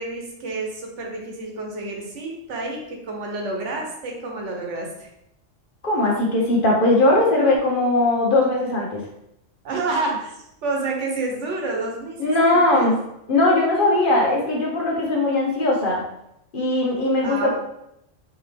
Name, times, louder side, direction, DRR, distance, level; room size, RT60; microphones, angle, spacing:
voice 1, 0.0-5.1 9.6-12.9 17.2-17.5, right 3 dB, 75° right, 0 dB, 1.2 m, -29 dB
voice 2, 5.8-9.0 12.2-12.9 13.3-16.0 16.5-17.5, left 2 dB, 50° left, -2 dB, 1.0 m, -19 dB
4.3 x 2.9 x 3.3 m, 0.80 s
omnidirectional pair, 1.2 m